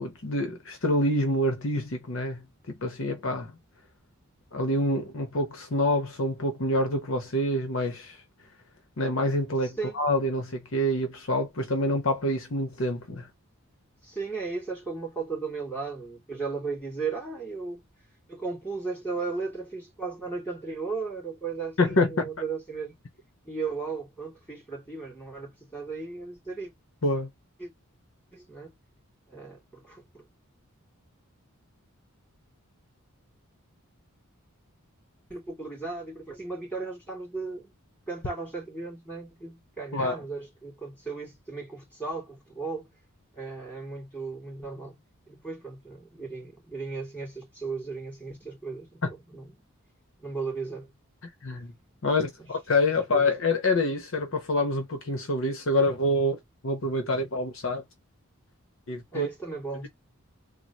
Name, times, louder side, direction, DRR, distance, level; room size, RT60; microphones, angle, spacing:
voice 1, 0.0-3.5 4.5-8.2 9.0-13.3 21.8-22.3 27.0-27.3 39.9-40.2 51.4-51.7 52.0-57.8 58.9-59.3, left 1 dB, 60° left, 0.8 m, -27 dB
voice 2, 9.6-10.0 14.0-17.8 18.3-23.0 23.4-26.7 27.6-27.7 28.3-28.7 29.3-30.3 35.3-37.7 38.1-42.9 43.3-45.0 45.3-49.6 50.2-50.9 52.4-52.5 53.1-53.3 59.1-59.9, right 4 dB, 5° left, 2.5 m, -36 dB
3.8 x 2.0 x 2.9 m
head